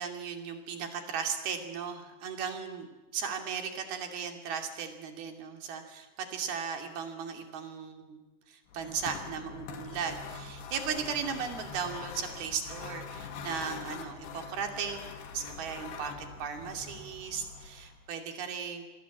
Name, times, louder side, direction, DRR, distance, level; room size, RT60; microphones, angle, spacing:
voice 1, 0.0-2.9 3.1-8.2 8.5-15.1 15.3-18.8, right 6 dB, 70° right, 5 dB, 4.6 m, -36 dB
sound 1, 8.7-18.1, left 5 dB, 85° left, 4.2 m, -44 dB
27.5 x 21.0 x 8.5 m, 1.1 s
omnidirectional pair, 4.6 m